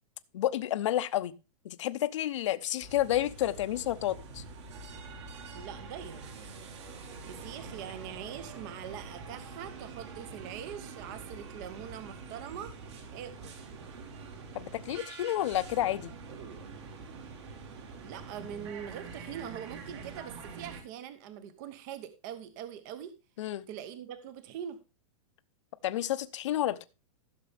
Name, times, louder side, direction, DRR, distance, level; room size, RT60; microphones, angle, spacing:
voice 1, 0.3-1.3 1.6-4.4 14.5-16.1 23.4-23.6 25.8-26.8, left 13 dB, 55° left, 0.8 m, -30 dB
sound 1, 2.8-20.8, right 4 dB, 50° right, 2.1 m, -45 dB
voice 2, 5.5-6.2 7.3-12.7 13.1-13.6 18.0-23.1 23.7-24.8, right 9 dB, 30° right, 0.8 m, -43 dB
15.0 x 6.8 x 3.4 m
supercardioid pair, 170°, 19 cm